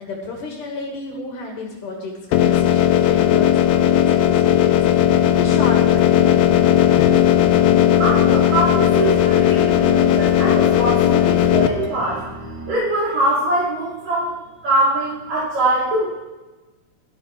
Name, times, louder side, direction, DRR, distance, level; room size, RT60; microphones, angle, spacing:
voice 1, 0.0-6.2, left 3 dB, 65° left, 0 dB, 2.9 m, -31 dB
sound 1, 2.3-11.7, left 11 dB, 80° left, 2.3 m, -16 dB
sound 2, 3.1-12.8, equal, 5° left, 4.8 m, -35 dB
sound 3, 6.0-12.5, right 4 dB, 75° right, 2.9 m, -38 dB
voice 2, 8.0-12.2 12.7-14.4 14.6-16.1, right 2 dB, 55° right, -7 dB, 3.4 m, -22 dB
16.5 x 12.5 x 3.1 m, 1.2 s
omnidirectional pair, 4.2 m